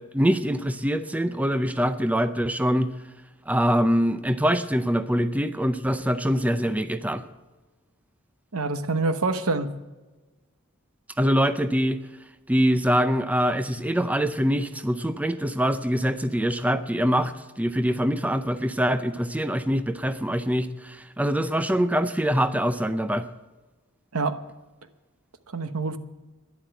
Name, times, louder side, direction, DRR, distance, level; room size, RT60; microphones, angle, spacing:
voice 1, 0.0-2.9 3.5-7.2 11.2-12.0 12.5-23.3, equal, 5° right, 0.5 m, -24 dB
voice 2, 8.5-9.7 24.1-24.4 25.5-26.0, right 3 dB, 85° right, 1.1 m, -26 dB
11.5 x 11.0 x 8.1 m
head